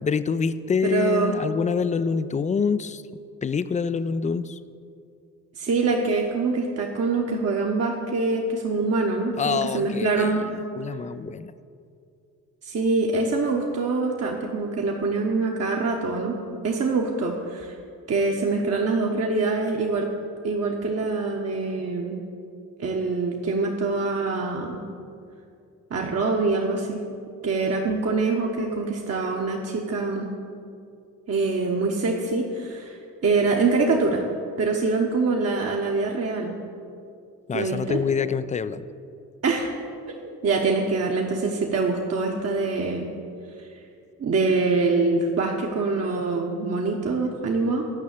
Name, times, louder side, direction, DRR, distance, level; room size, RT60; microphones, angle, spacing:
voice 1, 0.0-3.0 3.4-4.6 9.4-11.5 37.5-38.9, left 5 dB, 20° left, 14 dB, 0.4 m, -26 dB
voice 2, 0.8-1.4 5.6-10.4 12.6-16.4 16.6-17.7 18.1-20.1 20.4-22.2 22.8-24.8 25.9-27.0 27.4-30.3 31.3-33.0 33.2-34.2 34.6-36.6 37.5-38.0 39.4-39.7 40.2-43.1 44.2-47.9, right 3 dB, 40° right, 0 dB, 1.2 m, -24 dB
9.9 x 5.6 x 8.2 m, 2.4 s
hypercardioid pair, 50°, 36 cm